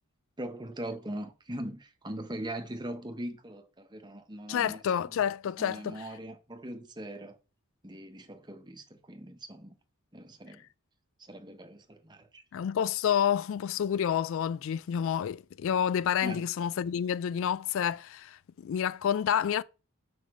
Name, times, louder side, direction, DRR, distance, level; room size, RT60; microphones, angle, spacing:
voice 1, 0.4-4.8 5.1-5.2 5.6-7.4 7.8-9.8 10.1-10.6 11.2-12.4 16.2-16.4, right 1 dB, 20° right, 1.0 m, -41 dB
voice 2, 4.5-6.0 12.5-19.6, left 8 dB, 60° left, 0.3 m, -29 dB
6.6 x 5.2 x 4.9 m
head